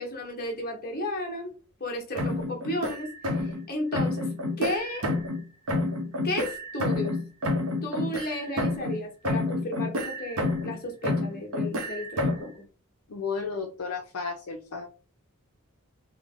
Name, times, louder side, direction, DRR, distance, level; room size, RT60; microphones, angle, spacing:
voice 1, 0.0-1.5 1.8-4.3 4.6-5.0 6.2-7.2 7.8-12.6, left 1 dB, 40° left, 1 dB, 1.1 m, -33 dB
sound 1, 2.1-3.6 3.9-5.4 5.7-9.0 9.2-10.8 11.0-12.5, left 2 dB, 65° right, 0.8 m, -29 dB
voice 2, 13.1-14.9, left 5 dB, 75° left, 2 dB, 0.5 m, -33 dB
3.2 x 2.1 x 3.7 m, 0.34 s
head